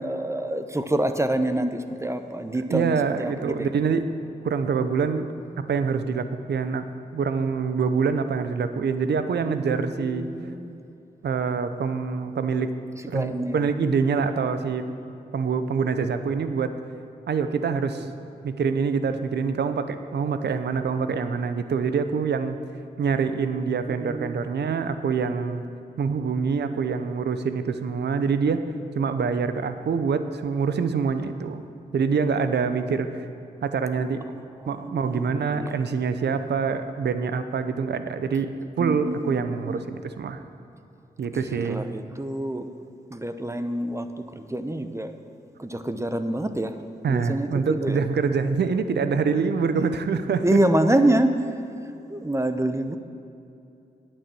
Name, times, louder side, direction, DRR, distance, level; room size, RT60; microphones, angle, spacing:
voice 1, 0.0-3.7 9.5-10.8 13.1-13.6 18.0-18.1 23.9-24.4 34.9-35.7 38.8-39.4 39.7-39.8 41.5-42.7 43.1-44.1 44.3-45.1 45.6-46.7 47.1-48.0 49.8-49.9 50.4-51.3 52.1-53.0, right 1 dB, 15° right, 9 dB, 0.8 m, -26 dB
voice 2, 2.5-4.0 4.4-5.3 5.7-6.9 7.1-10.3 11.2-12.7 13.1-14.8 15.3-16.7 17.3-18.1 18.4-22.6 23.0-25.6 26.0-28.6 28.9-31.6 31.9-33.3 33.6-34.2 34.7-38.5 38.8-40.4 41.2-41.9 47.0-50.6, right 5 dB, 75° right, 10 dB, 0.7 m, -25 dB
8.8 x 8.4 x 6.9 m, 2.7 s
cardioid pair, 45°, 18 cm